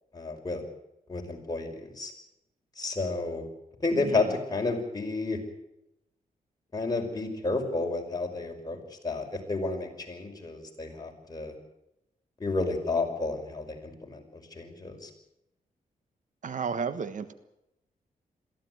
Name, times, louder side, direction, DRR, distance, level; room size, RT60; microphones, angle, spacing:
voice 1, 0.1-0.6 1.1-2.1 2.8-3.4 3.8-5.4 6.7-11.5 12.4-15.1, left 3 dB, 25° left, 2 dB, 5.6 m, -31 dB
voice 2, 4.0-4.4 16.4-17.3, right 6 dB, 60° right, 12 dB, 1.4 m, -33 dB
22.5 x 15.5 x 9.4 m, 0.86 s
cardioid pair, 95°, 15 cm